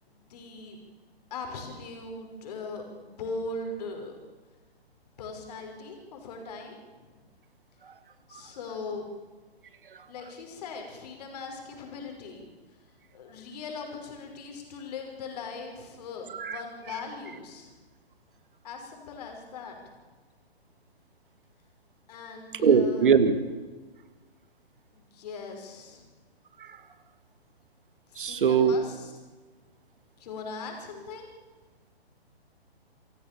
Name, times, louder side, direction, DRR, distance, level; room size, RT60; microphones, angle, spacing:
voice 1, 0.1-0.8 1.3-4.1 5.2-7.2 8.3-9.1 10.1-12.4 13.1-17.7 18.6-19.8 22.1-23.2 24.9-26.0 28.1-29.1 30.2-31.3, left 4 dB, 40° left, 3 dB, 5.6 m, -40 dB
voice 2, 22.6-23.4 26.6-26.8 28.2-28.7, right 6 dB, 55° right, 12 dB, 2.1 m, -21 dB
27.0 x 16.5 x 6.9 m, 1.3 s
figure-of-eight pair, 130°, 32 cm